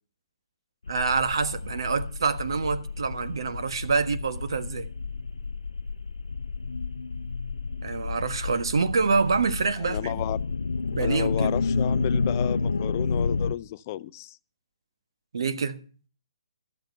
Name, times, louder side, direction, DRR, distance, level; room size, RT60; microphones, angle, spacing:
sound 1, 0.9-13.5, left 4 dB, 80° left, 0.5 m, -30 dB
voice 1, 0.9-4.9 7.8-10.2 10.9-11.6 15.3-15.8, right 4 dB, 65° right, 1.4 m, -26 dB
voice 2, 9.8-10.4 11.0-14.4, left 14 dB, 35° left, 0.5 m, -32 dB
13.0 x 8.2 x 6.9 m
figure-of-eight pair, 140°, 3 cm